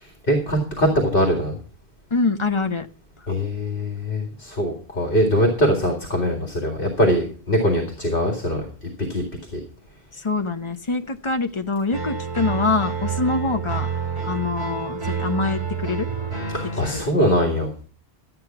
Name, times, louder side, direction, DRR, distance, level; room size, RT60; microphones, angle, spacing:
voice 1, 0.3-1.6 3.3-8.7 9.1-9.2 9.5-9.6 16.5-17.7, equal, 60° left, 2 dB, 2.5 m, -22 dB
voice 2, 2.1-2.9 10.1-13.9 14.3-16.1 16.9-17.0, left 3 dB, 30° left, 8 dB, 0.9 m, -24 dB
sound 1, 11.9-17.0, right 6 dB, 60° right, 3.1 m, -28 dB
13.0 x 8.5 x 5.8 m, 0.41 s
omnidirectional pair, 1.1 m